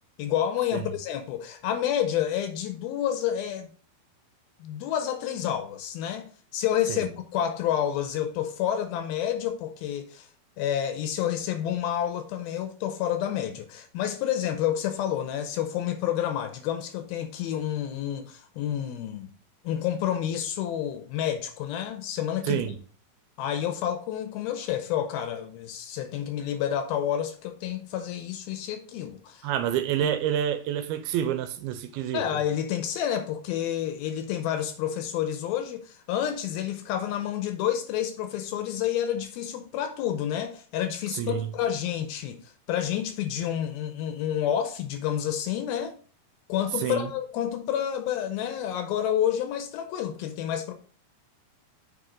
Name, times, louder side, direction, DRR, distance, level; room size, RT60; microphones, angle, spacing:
voice 1, 0.2-3.7 4.6-10.3 10.6-19.3 19.6-22.6 23.4-29.5 32.1-46.0 46.5-50.7, left 10 dB, 80° left, 2.4 m, -29 dB
voice 2, 22.5-22.8 29.4-32.2 41.2-41.5 46.8-47.1, right 10 dB, 80° right, 2.4 m, -28 dB
7.8 x 4.9 x 3.8 m
omnidirectional pair, 4.7 m